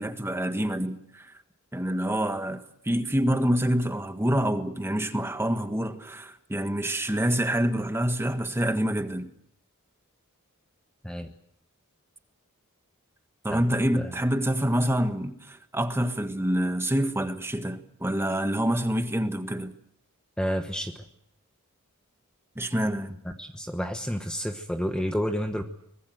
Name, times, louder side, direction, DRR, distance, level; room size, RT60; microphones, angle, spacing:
voice 1, 0.0-1.3 1.7-9.3 13.4-19.7 22.5-23.1, equal, 10° right, 1.6 m, -27 dB
voice 2, 20.4-20.9 23.2-25.6, equal, 5° left, 1.2 m, -30 dB
24.0 x 21.0 x 7.9 m
head